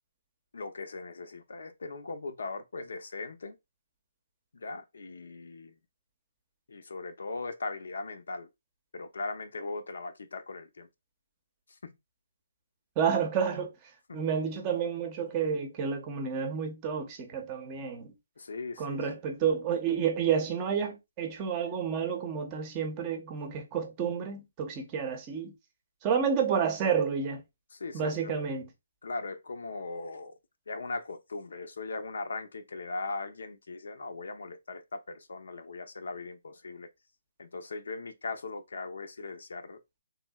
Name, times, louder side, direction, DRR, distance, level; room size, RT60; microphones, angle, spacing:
voice 1, 0.5-3.6 4.5-5.7 6.7-8.5 8.9-10.9 11.7-12.0 14.1-14.2 18.4-19.0 27.7-28.4 29.0-30.3 30.7-36.9 37.4-39.8, left 3 dB, 70° left, 0.6 m, -39 dB
voice 2, 13.0-13.7 14.1-18.1 18.8-25.5 26.0-27.4 27.9-28.7, right 7 dB, 25° right, 0.7 m, -30 dB
3.1 x 2.7 x 2.3 m
hypercardioid pair, 155°, 0 cm